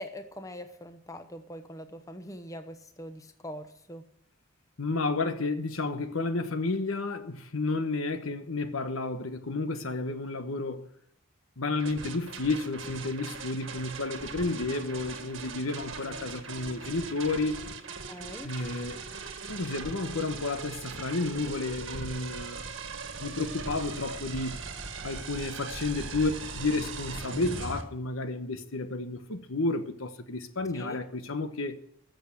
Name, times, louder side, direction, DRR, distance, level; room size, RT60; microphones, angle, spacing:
voice 1, 0.0-4.1 18.1-18.5 30.7-31.0, equal, 15° left, 1.0 m, -42 dB
voice 2, 4.8-10.9 11.6-17.6 18.4-19.0 19.5-22.7 23.2-24.6 25.0-31.8, left 3 dB, 85° left, 1.1 m, -31 dB
sound 1, 11.7-27.8, right 4 dB, 65° right, 1.6 m, -40 dB
14.5 x 6.7 x 9.2 m
head